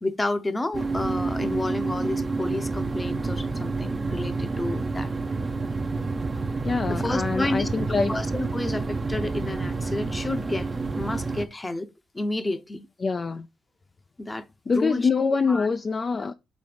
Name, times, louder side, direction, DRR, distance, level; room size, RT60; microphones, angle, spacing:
voice 1, 0.0-5.1 6.9-7.7 8.1-10.7 11.0-11.9 12.1-12.9 14.2-15.1 15.5-15.7 16.2-16.3, left 2 dB, 20° left, 0.8 m, -30 dB
sound 1, 0.7-11.5, right 3 dB, 30° right, 0.6 m, -29 dB
voice 2, 6.6-8.1 13.0-13.5 14.7-16.3, left 4 dB, 35° left, 0.4 m, -24 dB
5.2 x 3.8 x 5.1 m
cardioid pair, 90°, 0 cm